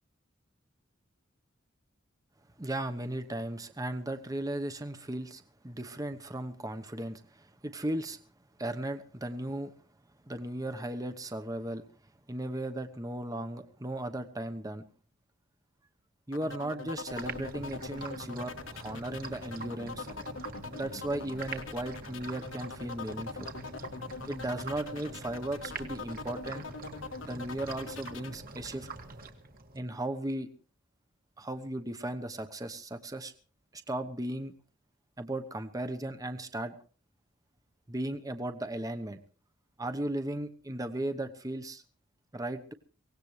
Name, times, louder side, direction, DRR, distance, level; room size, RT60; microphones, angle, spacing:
voice 1, 2.6-8.2 8.6-9.7 10.2-11.8 12.3-14.8 16.3-20.1 20.7-23.5 24.3-26.6 27.2-28.9 29.7-30.5 31.4-33.3 33.7-34.5 35.2-36.7 37.9-39.2 39.8-41.8 42.3-42.7, right 1 dB, 20° right, 8 dB, 1.0 m, -36 dB
sound 1, 16.3-28.3, left 3 dB, 70° left, 1.3 m, -42 dB
sound 2, 17.1-29.8, right 3 dB, 45° right, 2.1 m, -45 dB
24.0 x 18.0 x 3.2 m, 0.39 s
head